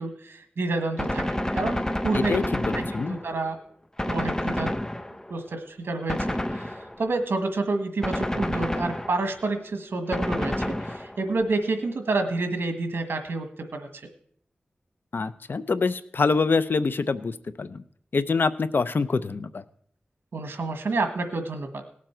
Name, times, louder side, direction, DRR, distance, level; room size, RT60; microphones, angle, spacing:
voice 1, 0.0-2.4 2.7-3.6 4.1-4.7 5.3-14.0 20.3-21.8, right 3 dB, 90° right, 7 dB, 1.5 m, -29 dB
Gunshot gunfire, 1.0-3.5 4.0-5.4 6.1-7.1 8.0-9.4 10.1-11.3, left 1 dB, 15° left, 0.7 m, -29 dB
voice 2, 2.1-3.2 15.1-17.8 18.1-19.6, left 4 dB, 65° left, 14 dB, 0.6 m, -25 dB
18.5 x 7.4 x 4.5 m, 0.62 s
wide cardioid pair, 75°, 4 cm